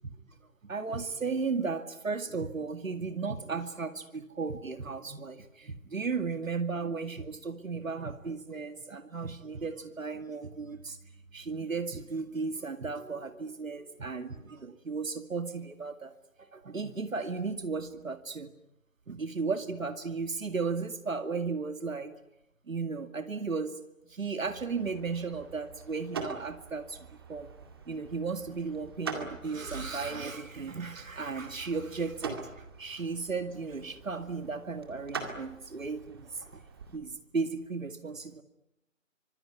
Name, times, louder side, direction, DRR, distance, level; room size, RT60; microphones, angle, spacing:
voice 1, 0.6-11.0 11.3-16.1 16.4-18.5 19.1-22.1 22.7-23.7 24.1-27.5 27.9-32.4 32.8-36.6 36.9-38.4, right 4 dB, 75° right, 8 dB, 2.3 m, -35 dB
sound 1, 24.4-37.0, right 4 dB, 20° right, 2.1 m, -44 dB
25.5 x 23.5 x 9.6 m, 0.88 s
figure-of-eight pair, 175°, 40 cm